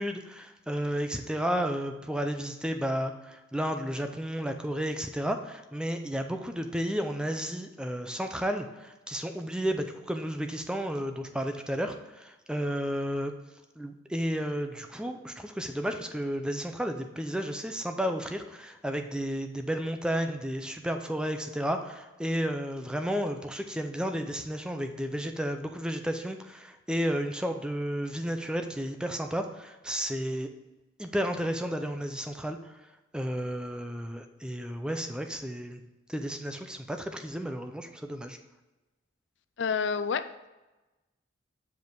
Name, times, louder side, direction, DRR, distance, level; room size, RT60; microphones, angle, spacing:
voice 1, 0.0-13.3 13.8-30.5 31.0-32.6 33.1-35.8 36.1-38.4, equal, 5° right, 6 dB, 0.5 m, -32 dB
voice 2, 39.6-40.5, left 6 dB, 70° left, 11 dB, 0.4 m, -29 dB
7.1 x 5.1 x 4.6 m, 1.1 s
head